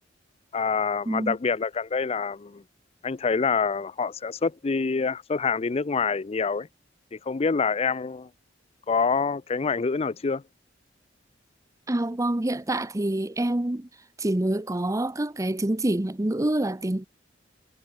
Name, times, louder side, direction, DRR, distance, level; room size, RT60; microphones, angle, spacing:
voice 1, 0.5-2.6 3.0-6.7 7.1-8.3 8.9-10.4, left 5 dB, 35° left, 0.5 m, -26 dB
voice 2, 1.1-1.4 11.9-13.9 14.2-17.1, right 1 dB, 15° right, 0.7 m, -26 dB
head